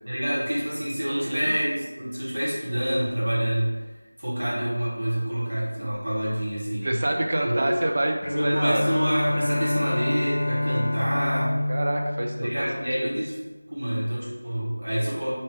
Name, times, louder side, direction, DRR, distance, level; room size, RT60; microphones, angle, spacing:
voice 1, 0.0-3.8 4.2-7.0 7.4-7.6 8.3-11.6 12.4-13.3 13.7-15.3, equal, 60° right, -9 dB, 1.4 m, -27 dB
voice 2, 1.1-1.5 6.8-8.9 11.1-11.4 11.7-12.7 13.0-13.1, right 1 dB, 35° right, 1 dB, 0.4 m, -27 dB
Bowed string instrument, 8.2-13.5, left 1 dB, 60° left, 0.3 m, -28 dB
3.6 x 2.7 x 3.5 m, 1.2 s
figure-of-eight pair, 175°, 0 cm